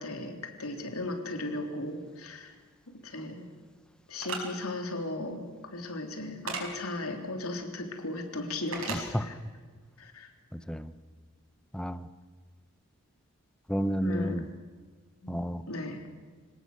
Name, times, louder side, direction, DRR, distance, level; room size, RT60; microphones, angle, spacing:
voice 1, 0.0-2.5 2.9-3.5 4.1-9.4 10.0-10.3 14.0-14.4 15.2-16.0, left 2 dB, 85° left, 5 dB, 3.4 m, -36 dB
sound 1, 4.2-4.4 6.5-6.6 8.7-9.0, right 4 dB, 70° right, 5.4 m, -34 dB
voice 2, 8.9-9.3 10.5-10.9 11.7-12.1 13.7-14.5 15.3-15.6, equal, 5° left, 13 dB, 0.9 m, -31 dB
26.5 x 18.0 x 7.9 m, 1.5 s
head